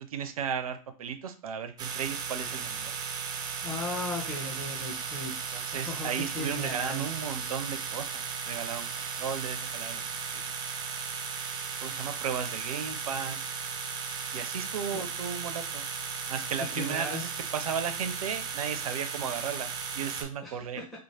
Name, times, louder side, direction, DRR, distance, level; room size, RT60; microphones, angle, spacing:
voice 1, 0.0-2.9 5.5-10.6 11.8-13.5 14.3-15.9 16.3-19.7 19.9-20.8, right 7 dB, 80° right, 9 dB, 0.4 m, -35 dB
sound 1, 1.8-20.3, right 6 dB, 25° right, 0.4 m, -36 dB
voice 2, 3.6-5.4 5.7-7.1 14.9-15.0 16.6-17.2 20.4-20.9, left 2 dB, ahead, -2 dB, 0.8 m, -37 dB
3.0 x 2.0 x 2.7 m, 0.37 s
hypercardioid pair, 105°, 18 cm